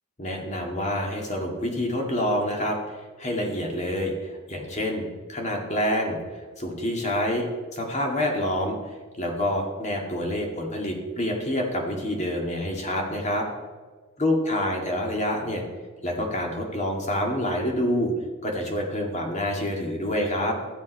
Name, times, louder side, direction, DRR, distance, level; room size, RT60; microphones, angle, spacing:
voice 1, 0.2-2.8 3.2-7.4 7.7-13.5 14.2-15.6 16.0-18.1 18.4-20.5, left 1 dB, 35° left, 1 dB, 2.0 m, -27 dB
13.5 x 7.4 x 5.3 m, 1.4 s
head